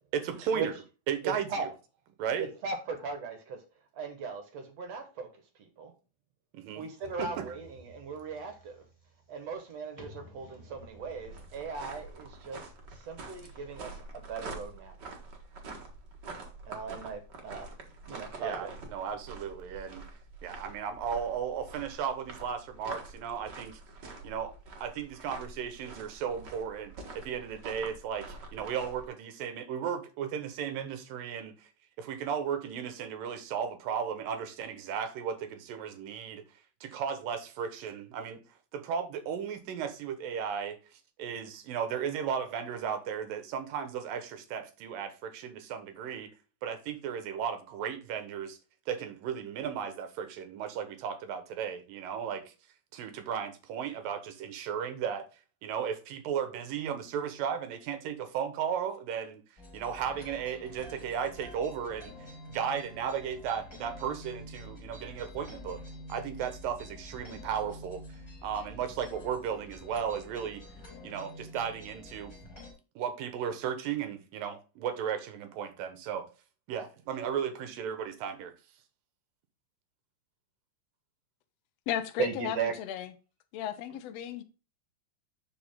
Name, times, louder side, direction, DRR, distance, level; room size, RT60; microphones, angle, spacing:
voice 1, 0.1-0.7 1.1-1.5 2.2-2.5 6.5-6.8 7.2-7.3 18.4-20.1 20.4-23.8 24.2-24.5 24.8-28.3 28.5-31.7 32.0-36.4 36.8-38.4 38.7-40.8 41.2-46.3 46.6-48.6 48.9-52.5 52.9-55.3 55.6-59.4 59.7-62.1 62.5-65.8 66.1-68.0 68.4-70.6 71.0-72.3 73.0-76.3 76.7-78.5, right 7 dB, 90° right, 3.0 m, -35 dB
voice 2, 1.2-1.7 2.4-3.6 3.9-5.3 5.6-5.9 6.7-8.8 9.3-15.0 16.6-17.7 18.1-18.7 82.2-82.7, right 5 dB, 60° right, 2.2 m, -37 dB
sound 1, 7.0-14.0, equal, 10° right, 2.0 m, -55 dB
sound 2, 10.7-29.1, right 3 dB, 45° right, 1.6 m, -46 dB
sound 3, 59.6-72.7, left 1 dB, 25° left, 4.4 m, -48 dB
voice 3, 81.9-83.1 83.5-84.4, left 10 dB, 75° left, 1.5 m, -35 dB
11.0 x 4.9 x 3.7 m
omnidirectional pair, 3.9 m